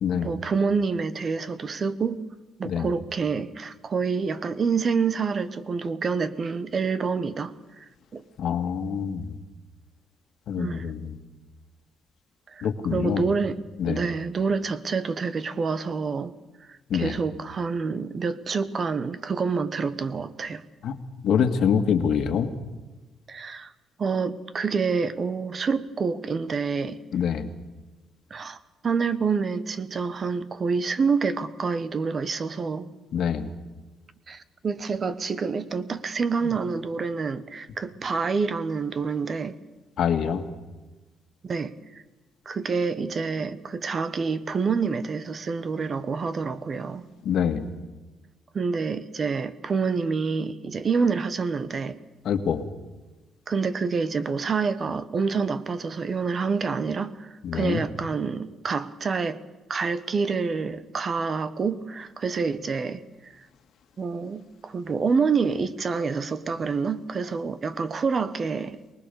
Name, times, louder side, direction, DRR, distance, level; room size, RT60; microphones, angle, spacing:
voice 1, 0.2-2.3 2.6-7.8 8.1-8.2 10.6-10.9 12.5-13.6 13.9-16.3 16.7-20.6 23.3-23.7 24.0-27.0 28.3-28.6 28.8-32.9 34.3-39.6 41.4-42.0 42.5-47.1 48.5-52.0 53.5-59.4 59.7-63.4 64.0-68.8, right 5 dB, 35° right, 1.0 m, -27 dB
voice 2, 8.4-9.4 10.5-11.2 12.6-13.2 13.8-14.0 16.9-17.2 20.8-21.0 21.2-22.5 27.1-27.5 33.1-33.5 40.0-40.4 47.3-47.6 52.3-52.6 57.4-57.8, left 7 dB, 65° left, 1.8 m, -25 dB
23.5 x 20.0 x 6.9 m
cardioid pair, 135°, 0 cm